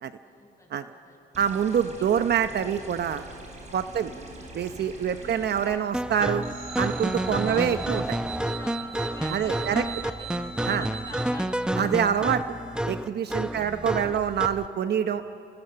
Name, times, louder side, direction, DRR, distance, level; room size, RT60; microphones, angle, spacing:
voice 1, 0.2-1.2 2.0-2.1 3.9-4.3 5.2-5.5 7.4-10.2 10.6-11.7 13.4-13.8, left 1 dB, 15° left, 1 dB, 6.5 m, -46 dB
sound 1, 1.3-5.7, right 1 dB, 35° right, 5.0 m, -44 dB
voice 2, 1.4-3.3 3.7-4.1 4.5-6.4 6.8-8.0 9.3-9.8 10.7-10.8 11.8-12.4 12.9-15.2, right 8 dB, 55° right, 10 dB, 0.8 m, -26 dB
sound 2, 5.9-14.7, right 1 dB, 5° right, 0.7 m, -30 dB
sound 3, 6.4-11.3, right 7 dB, 80° right, 5.7 m, -38 dB
29.0 x 25.0 x 6.9 m, 2.8 s
cardioid pair, 90°, 20 cm